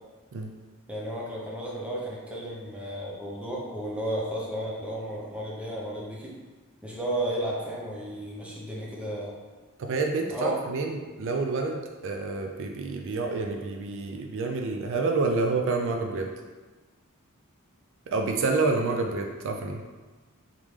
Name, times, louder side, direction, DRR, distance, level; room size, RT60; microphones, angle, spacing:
voice 1, 0.9-6.4 6.8-9.4 10.3-10.6, right 1 dB, 5° right, -4 dB, 0.7 m, -33 dB
voice 2, 9.8-16.3 18.1-19.8, right 3 dB, 60° right, 3 dB, 0.4 m, -28 dB
3.7 x 3.6 x 3.2 m, 1.3 s
head